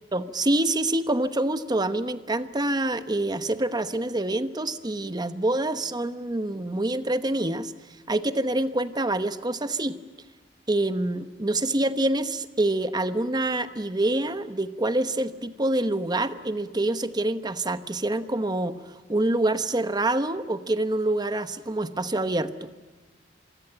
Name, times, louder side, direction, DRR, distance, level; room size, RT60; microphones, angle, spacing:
voice 1, 0.1-7.7 8.1-10.0 10.7-22.7, right 1 dB, 25° right, 11 dB, 1.1 m, -26 dB
27.0 x 23.5 x 8.9 m, 1.3 s
head